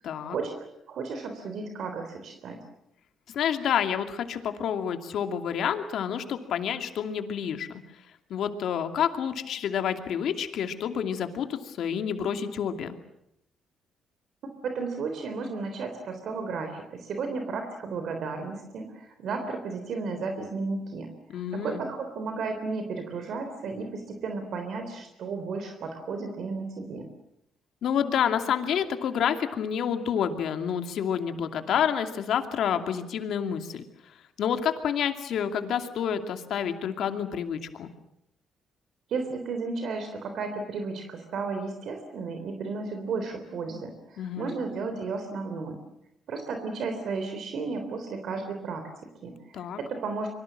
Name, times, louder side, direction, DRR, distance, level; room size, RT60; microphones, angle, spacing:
voice 1, 0.0-0.4 3.3-7.8 8.3-13.0 21.3-21.8 27.8-37.9 44.2-44.5 49.5-49.8, left 8 dB, 70° left, 7 dB, 2.5 m, -29 dB
voice 2, 0.9-2.6 14.6-27.1 39.1-45.8 46.3-50.3, right 4 dB, 65° right, 6 dB, 3.5 m, -33 dB
26.0 x 24.0 x 7.6 m, 0.80 s
cardioid pair, 100°, 0 cm